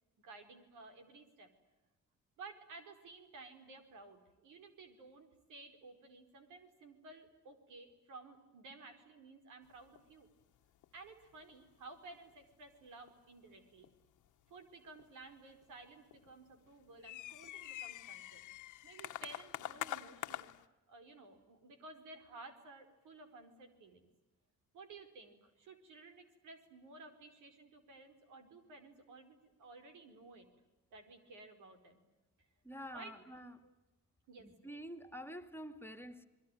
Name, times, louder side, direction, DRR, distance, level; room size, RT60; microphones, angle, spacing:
voice 1, 0.2-1.5 2.4-10.3 10.9-13.9 14.5-18.5 18.8-20.5 20.9-24.1 24.7-30.5 30.9-32.0 32.9-33.2 33.6-33.7 34.3-34.8, right 3 dB, 90° right, 4.7 m, -55 dB
sound 1, 9.7-10.1 10.4-10.6 10.8-11.1 11.3-11.7 12.0-12.5 13.1-13.2 13.8-14.2 15.0-15.8 16.1-20.6, left 14 dB, 85° left, 1.3 m, -45 dB
voice 2, 32.6-33.5 34.4-36.3, equal, 5° left, 2.2 m, -48 dB
28.5 x 22.0 x 9.2 m
cardioid pair, 90°, 30 cm